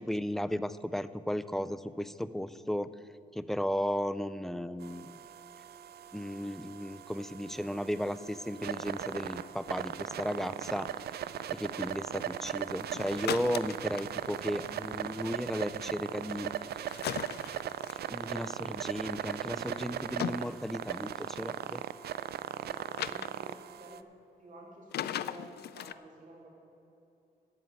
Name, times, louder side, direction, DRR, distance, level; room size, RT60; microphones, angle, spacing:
voice 1, 0.0-2.9 3.3-5.1 6.1-10.9 11.5-16.8 18.1-21.8, equal, ahead, 13 dB, 0.4 m, -35 dB
sound 1, 4.8-24.0, right 10 dB, 85° right, 0.4 m, -39 dB
sound 2, 12.9-14.5 16.9-18.0 19.9-20.5 23.0-23.3 24.9-25.9, left 11 dB, 85° left, 0.4 m, -37 dB
voice 2, 22.6-24.0 24.4-26.5, right 1 dB, 55° right, -2 dB, 3.3 m, -51 dB
14.0 x 5.4 x 9.3 m, 2.9 s
wide cardioid pair, 115°, 16 cm